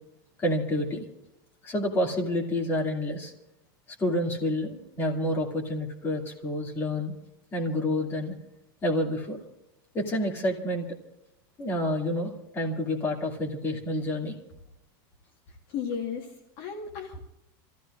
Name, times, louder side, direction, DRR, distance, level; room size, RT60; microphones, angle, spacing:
voice 1, 0.4-1.0 1.6-3.3 4.0-7.1 7.5-8.3 8.8-9.4 9.9-10.9 11.6-14.3, left 1 dB, 20° left, 0 dB, 2.5 m, -28 dB
voice 2, 15.7-17.2, left 6 dB, 40° left, 1 dB, 1.6 m, -34 dB
28.5 x 15.0 x 2.5 m, 0.89 s
supercardioid pair, 170°, 12 cm